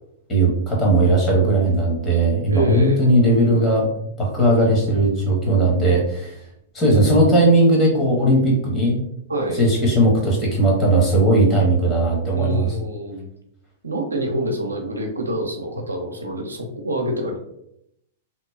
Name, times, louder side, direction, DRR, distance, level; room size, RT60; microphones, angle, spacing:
voice 1, 0.3-3.9 4.2-6.4 6.7-9.0 9.5-12.8, right 1 dB, 20° left, -3 dB, 1.2 m, -17 dB
voice 2, 2.5-3.0 9.3-9.6 12.4-13.3 13.8-17.4, equal, 85° right, 2 dB, 0.4 m, -26 dB
2.8 x 2.1 x 2.3 m, 0.77 s
figure-of-eight pair, 105°, 0 cm